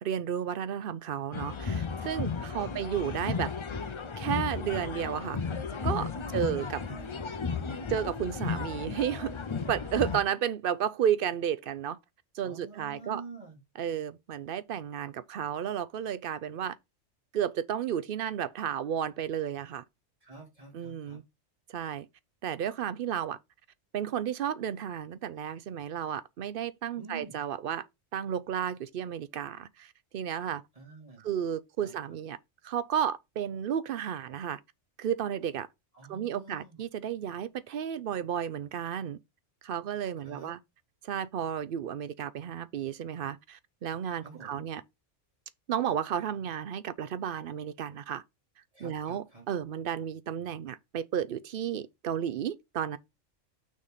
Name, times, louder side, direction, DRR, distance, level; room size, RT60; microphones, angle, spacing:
voice 1, 0.0-3.5 4.2-5.4 5.8-6.8 7.9-9.3 9.7-12.0 12.3-13.2 13.8-16.8 17.3-19.8 20.7-21.2 21.7-22.1 22.4-23.4 23.9-27.9 28.1-30.6 31.2-32.4 32.6-34.6 35.0-35.7 36.1-39.2 39.6-40.6 41.0-44.8 45.7-48.2 48.8-53.0, right 9 dB, 60° right, 0.6 m, -32 dB
sound 1, 1.3-10.2, left 5 dB, 50° left, 0.3 m, -34 dB
voice 2, 6.3-7.4 12.4-13.6 20.2-21.2 27.0-27.4 30.7-31.3 31.8-31.9 35.9-36.8 40.2-40.5 44.2-44.6 48.7-49.5, right 3 dB, 25° right, 2.6 m, -47 dB
6.3 x 3.7 x 5.6 m
omnidirectional pair, 1.3 m